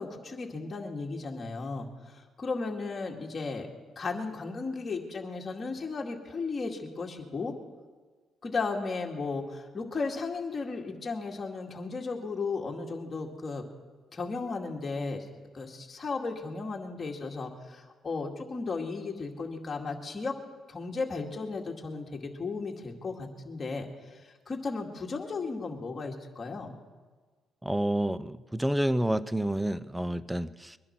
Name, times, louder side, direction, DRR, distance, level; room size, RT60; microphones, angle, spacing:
voice 1, 0.0-3.7 4.0-7.5 8.4-13.6 14.1-15.3 15.5-20.3 20.7-26.8, left 4 dB, 35° left, 0 dB, 2.2 m, -35 dB
voice 2, 27.6-30.8, right 1 dB, 5° right, 16 dB, 0.6 m, -29 dB
22.0 x 11.0 x 6.0 m, 1.4 s
cardioid pair, 90°, 0 cm